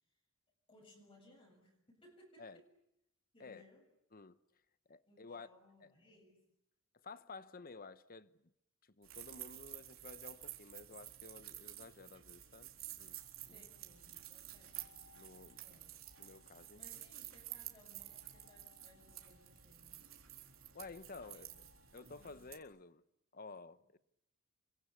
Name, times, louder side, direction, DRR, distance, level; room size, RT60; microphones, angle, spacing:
voice 1, 0.7-2.7 3.3-3.9 5.1-6.4 13.4-14.9 15.6-15.9 16.7-19.9 21.2-21.5 21.9-22.5, left 1 dB, 25° left, 7.4 m, -65 dB
voice 2, 4.9-5.5 5.8-5.9 7.0-8.4 8.8-12.7 13.0-13.2 13.5-13.7 15.1-15.6 16.2-16.8 20.7-21.5 21.9-23.0 23.3-23.8, left 4 dB, 45° left, 1.1 m, -52 dB
sound 1, 9.0-22.6, right 13 dB, 75° right, 4.0 m, -51 dB
sound 2, 12.4-22.3, left 4 dB, 60° left, 6.0 m, -70 dB
29.0 x 24.0 x 8.5 m
head